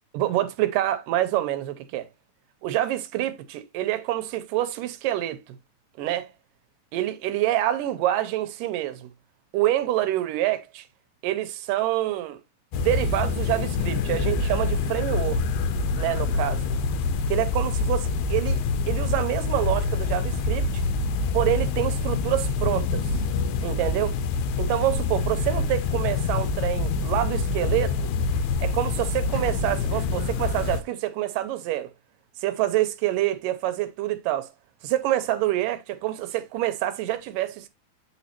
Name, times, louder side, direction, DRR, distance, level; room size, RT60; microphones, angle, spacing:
voice 1, 0.1-2.1 2.6-5.6 6.0-6.3 6.9-9.1 9.5-10.8 11.2-12.4 12.7-15.4 16.0-16.6 17.3-18.6 18.9-20.8 21.3-23.1 23.6-24.2 24.6-28.0 28.6-31.9 32.4-34.5 34.8-37.7, right 14 dB, 80° right, 2.2 m, -26 dB
sound 1, 12.7-30.8, left 4 dB, 85° left, 2.4 m, -26 dB
8.2 x 4.1 x 2.8 m
omnidirectional pair, 4.0 m